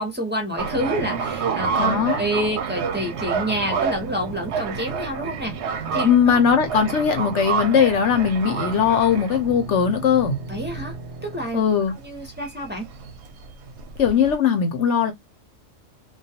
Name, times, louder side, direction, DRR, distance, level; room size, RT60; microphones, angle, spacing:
voice 1, 0.0-6.4 10.5-10.9 11.2-11.6 12.0-12.9, equal, 15° right, 0.5 m, -28 dB
sound 1, 0.6-14.4, right 6 dB, 65° right, 0.8 m, -29 dB
voice 2, 1.8-2.2 6.0-10.4 11.5-11.9 14.0-15.1, left 7 dB, 65° left, 0.9 m, -19 dB
2.3 x 2.3 x 2.7 m
omnidirectional pair, 1.3 m